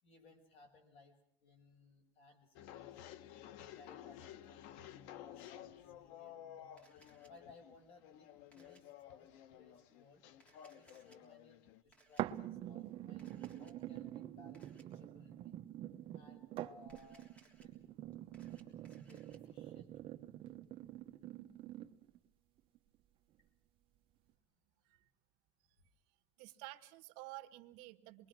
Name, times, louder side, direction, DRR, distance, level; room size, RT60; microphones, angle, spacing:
voice 1, 0.0-3.2 3.7-6.8 7.3-8.3 8.5-9.3 9.6-10.2 10.7-13.3 13.6-15.6 16.1-17.2 17.6-17.7 18.6-20.1 26.5-26.6, left 3 dB, 45° left, 5 dB, 6.3 m, -63 dB
sound 1, 2.6-11.8, left 11 dB, 70° left, 1.2 m, -54 dB
Camera, 6.8-7.3 8.5-8.8 10.3-11.2 11.9-12.2 13.2-13.7 14.5-14.8 16.8-17.7 18.1-19.4, right 2 dB, 10° left, 3.5 m, -67 dB
sound 2, 12.2-22.2 22.7-22.8, right 13 dB, 40° right, 1.1 m, -46 dB
voice 2, 26.4-28.3, right 19 dB, 70° right, 9 dB, 1.6 m, -52 dB
27.5 x 22.0 x 6.1 m, 0.63 s
cardioid pair, 170°, 13 cm